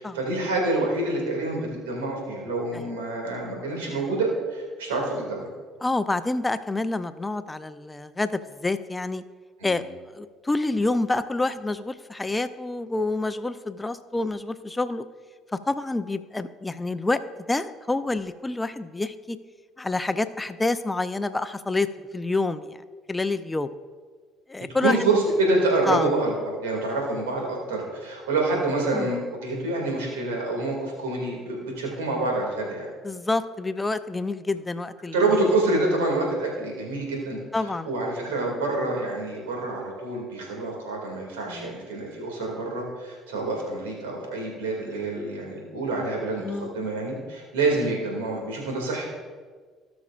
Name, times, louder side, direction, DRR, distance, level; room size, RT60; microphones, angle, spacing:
voice 1, 0.0-5.5 9.6-9.8 24.8-32.9 35.1-37.4 37.8-49.1, right 2 dB, 90° right, -1 dB, 2.4 m, -27 dB
voice 2, 5.8-9.2 9.6-9.8 10.1-15.0 15.5-17.2 17.5-19.4 19.8-21.9 22.1-22.8 23.1-23.7 24.5-25.0 25.9-26.1 28.9-29.1 33.0-35.4 37.5-37.9 41.5-41.8 46.4-46.8, left 2 dB, 20° left, 11 dB, 0.6 m, -28 dB
18.0 x 6.2 x 2.5 m, 1.5 s
hypercardioid pair, 60°, 0 cm